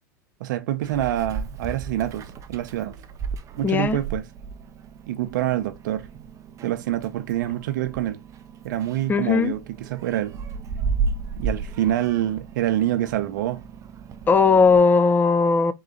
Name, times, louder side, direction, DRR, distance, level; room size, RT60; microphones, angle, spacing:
voice 1, 0.4-3.0 3.6-4.2 5.1-6.1 6.6-8.2 8.6-10.4 11.3-13.6, right 13 dB, 75° right, 0.7 m, -26 dB
Meow, 0.8-14.8, right 5 dB, 30° right, 0.6 m, -34 dB
voice 2, 3.6-4.0 9.1-9.5 14.3-15.7, left 4 dB, 20° left, 0.5 m, -18 dB
3.8 x 3.0 x 3.7 m
hypercardioid pair, 110°, 10 cm